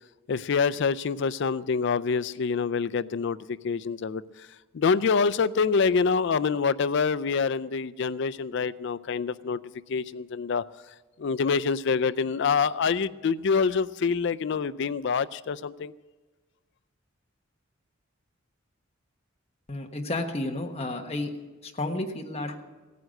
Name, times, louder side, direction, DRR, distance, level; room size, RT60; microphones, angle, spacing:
voice 1, 0.3-3.4 3.6-4.2 4.7-9.6 9.9-10.6 11.2-15.9, left 5 dB, 60° left, 14 dB, 0.4 m, -26 dB
voice 2, 19.7-21.3 21.6-22.6, left 2 dB, 30° left, 2 dB, 1.3 m, -31 dB
16.5 x 9.4 x 6.5 m, 1.3 s
head